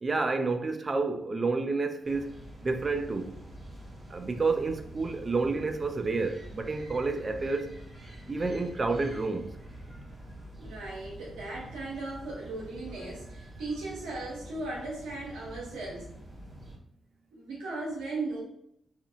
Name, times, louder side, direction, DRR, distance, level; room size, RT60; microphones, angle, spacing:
voice 1, 0.0-2.3 2.6-3.4 4.1-7.7 8.3-9.5, right 3 dB, 40° right, 0.4 m, -29 dB
sound 1, 2.0-16.8, right 1 dB, 25° right, 1.0 m, -46 dB
voice 2, 10.6-16.1 17.3-18.4, right 2 dB, 90° right, 0.8 m, -37 dB
2.7 x 2.4 x 2.4 m
supercardioid pair, 45°, 0 cm